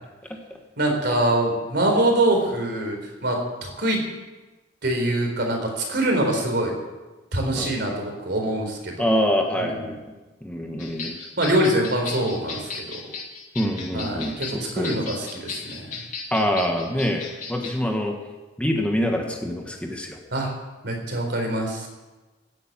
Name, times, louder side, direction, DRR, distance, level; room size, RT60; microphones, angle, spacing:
voice 1, 0.8-4.0 4.8-6.7 7.3-9.1 9.6-9.8 11.4-13.0 13.9-16.0 20.3-20.5 20.8-21.9, right 1 dB, 60° right, 2 dB, 4.2 m, -24 dB
voice 2, 9.0-10.0 10.4-11.2 13.5-15.0 16.3-17.2 17.5-18.1 18.6-20.2, equal, 5° left, 1 dB, 1.5 m, -25 dB
sound 1, 10.8-17.8, left 4 dB, 40° left, 3.1 m, -36 dB
15.5 x 9.3 x 8.9 m, 1.2 s
head